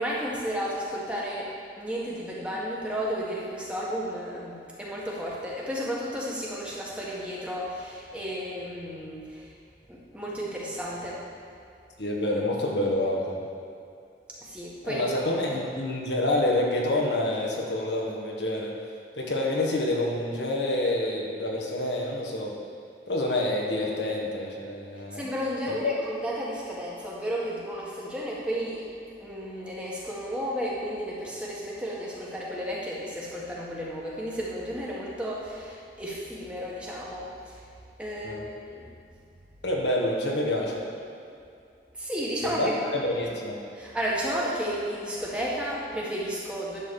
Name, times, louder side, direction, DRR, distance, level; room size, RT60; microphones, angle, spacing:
voice 1, 0.0-1.5 1.8-9.5 9.9-11.2 14.4-15.1 25.1-37.6 38.0-38.9 41.9-42.7 43.7-46.8, equal, 5° right, -6 dB, 1.4 m, -33 dB
voice 2, 12.0-13.4 14.8-18.7 19.1-22.6 23.1-25.2 25.7-25.9 38.2-38.4 39.6-40.8 42.4-43.6, left 1 dB, 85° left, -2 dB, 1.5 m, -27 dB
10.5 x 4.0 x 7.0 m, 2.5 s
head